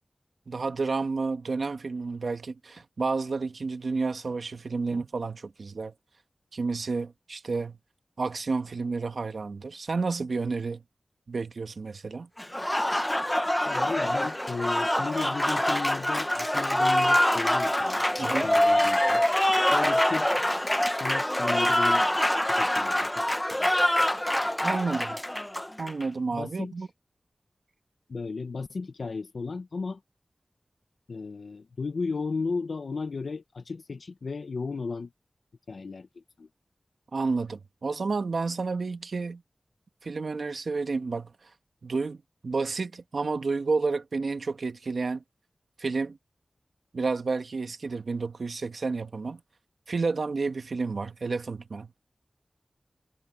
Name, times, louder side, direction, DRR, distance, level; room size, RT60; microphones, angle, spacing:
voice 1, 0.5-5.9 6.5-7.8 8.2-10.8 11.3-12.3 18.2-18.5 24.6-25.2 25.8-26.9 37.1-39.4 40.0-41.3 41.8-45.2 45.8-46.2 46.9-49.4 49.9-51.9, right 4 dB, 80° right, 1.3 m, -30 dB
Applause, 12.4-26.0, left 1 dB, 15° left, 0.9 m, -25 dB
voice 2, 13.7-18.0 18.4-19.2 19.7-20.6 21.0-22.0 22.6-23.7 24.7-24.8 26.3-26.9 28.1-30.0 31.1-35.1 35.7-36.5, left 4 dB, 85° left, 0.8 m, -35 dB
wide cardioid pair, 65°, 0 cm